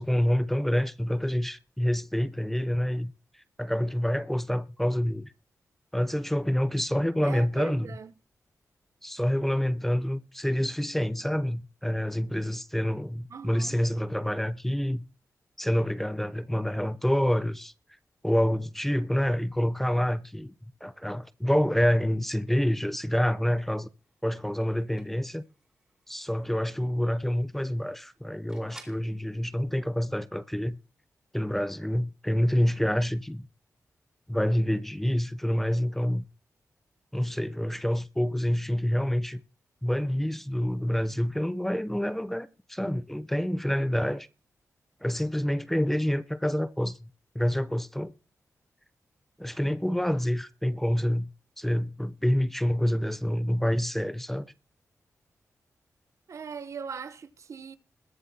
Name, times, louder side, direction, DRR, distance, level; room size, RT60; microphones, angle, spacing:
voice 1, 0.0-3.1 3.6-5.3 5.9-7.9 9.0-15.0 15.6-17.7 18.2-23.9 24.2-25.4 26.1-30.8 31.3-33.5 34.3-36.2 37.1-39.4 39.8-44.3 45.0-47.1 47.3-48.1 49.4-51.3 51.6-54.5, equal, 5° left, 0.6 m, -27 dB
voice 2, 7.2-8.1 13.3-13.8 56.3-57.8, right 6 dB, 60° right, 0.9 m, -39 dB
sound 1, 24.0-29.1, right 1 dB, 10° right, 3.4 m, -56 dB
21.5 x 7.6 x 2.8 m
wide cardioid pair, 145°, 6 cm